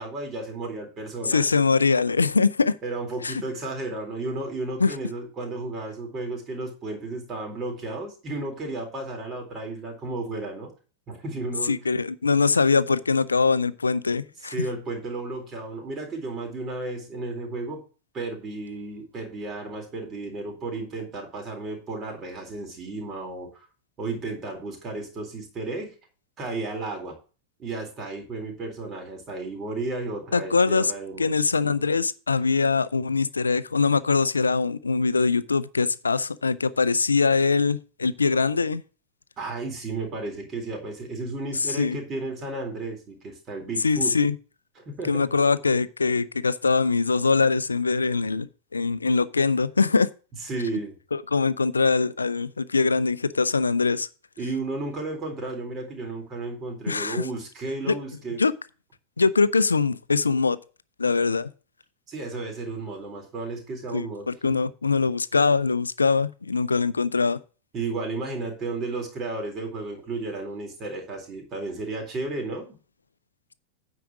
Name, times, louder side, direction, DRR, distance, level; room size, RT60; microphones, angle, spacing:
voice 1, 0.0-1.6 2.8-10.7 11.1-11.8 14.5-17.8 18.1-23.7 24.0-25.9 26.4-27.2 27.6-31.3 39.4-44.2 44.8-45.3 50.4-51.0 54.4-58.4 62.1-64.6 67.7-72.7, right 3 dB, 25° right, 3.8 m, -33 dB
voice 2, 1.2-2.7 3.2-3.4 4.8-4.9 11.7-14.7 30.3-30.9 31.2-38.8 41.8-42.0 43.8-44.3 45.1-48.5 48.7-50.1 51.1-54.1 56.9-57.3 57.9-58.0 58.4-58.5 59.2-60.6 61.0-61.5 63.9-67.4, left 4 dB, 75° left, 0.4 m, -22 dB
9.2 x 4.9 x 6.1 m
figure-of-eight pair, 90°, 0 cm